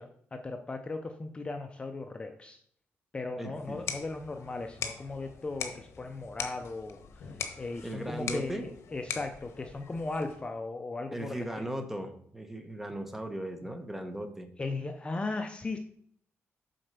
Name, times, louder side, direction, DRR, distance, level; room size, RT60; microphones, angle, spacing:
voice 1, 0.0-2.6 3.1-11.7 14.6-15.8, left 3 dB, 20° left, 6 dB, 0.6 m, -37 dB
voice 2, 3.4-3.8 7.8-8.7 11.1-14.5, right 1 dB, 5° right, 6 dB, 1.1 m, -37 dB
sound 1, 3.6-10.5, left 6 dB, 80° left, 1.2 m, -41 dB
7.6 x 4.4 x 6.7 m, 0.64 s
wide cardioid pair, 140°, 5 cm